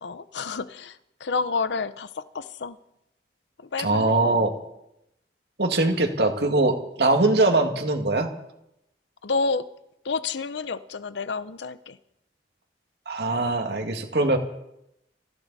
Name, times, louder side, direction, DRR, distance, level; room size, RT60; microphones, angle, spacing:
voice 1, 0.0-2.8 3.6-4.2 9.2-9.7 10.0-12.0, left 4 dB, 80° left, 14 dB, 0.7 m, -29 dB
voice 2, 3.8-4.5 5.6-8.3 13.1-14.4, right 2 dB, 65° right, 4 dB, 2.1 m, -22 dB
23.0 x 15.0 x 4.1 m, 0.83 s
head